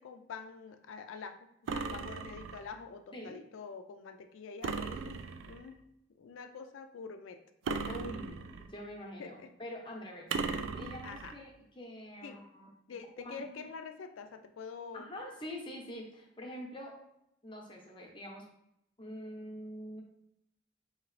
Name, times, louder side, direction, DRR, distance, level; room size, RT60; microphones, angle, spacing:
voice 1, 0.0-1.4 1.7-5.2 5.4-5.8 6.1-7.4 7.7-8.0 9.2-9.5 11.0-11.3 12.2-12.4 12.9-15.1, left 5 dB, 90° left, 8 dB, 0.4 m, -46 dB
sound 1, 1.7-2.7 4.6-5.7 7.7-8.8 10.3-11.4, right 4 dB, 85° right, 0.3 m, -37 dB
voice 2, 7.8-12.7 13.2-13.6 14.9-17.0 17.4-18.4 19.0-20.0, equal, 25° left, 0 dB, 0.7 m, -45 dB
4.8 x 2.8 x 3.1 m, 0.80 s
head